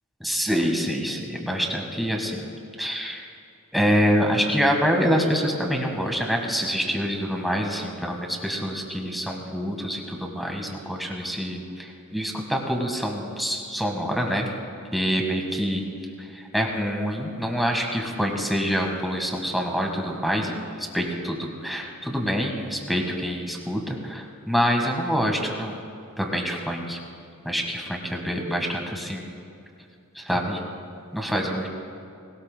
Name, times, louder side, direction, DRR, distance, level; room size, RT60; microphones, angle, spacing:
voice 1, 0.2-2.5 2.8-3.3 3.7-14.5 14.9-15.9 16.3-25.8 26.2-27.0 27.4-29.3 30.1-30.6 31.1-31.7, equal, ahead, 1 dB, 1.6 m, -26 dB
20.5 x 18.0 x 2.2 m, 2.5 s
head